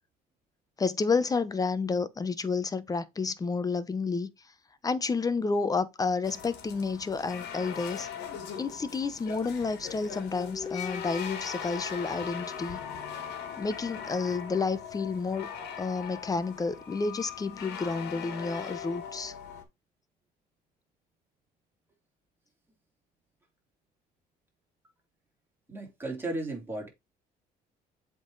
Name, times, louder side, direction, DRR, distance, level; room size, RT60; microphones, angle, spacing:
voice 1, 0.8-4.3 4.8-8.1 8.6-12.8 13.6-15.5 15.8-19.3, left 4 dB, 20° left, 0.7 m, -30 dB
sound 1, 6.2-19.6, left 7 dB, 80° left, 1.6 m, -40 dB
voice 2, 25.7-26.9, right 2 dB, 15° right, 3.0 m, -35 dB
7.8 x 3.8 x 3.9 m
cardioid pair, 110°, 17 cm